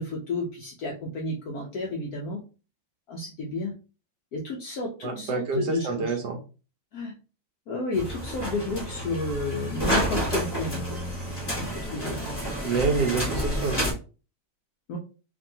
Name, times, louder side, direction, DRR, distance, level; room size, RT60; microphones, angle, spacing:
voice 1, 0.0-2.4 3.1-3.7 4.3-6.2 6.9-7.1 7.7-10.8 11.6-12.2 14.9-15.0, left 2 dB, 75° left, -1 dB, 0.8 m, -31 dB
voice 2, 5.0-6.4 12.6-13.9, right 4 dB, 70° right, 3 dB, 1.1 m, -27 dB
sound 1, 7.9-13.9, equal, 20° left, 0.7 m, -29 dB
3.0 x 2.7 x 2.7 m, 0.34 s
omnidirectional pair, 2.2 m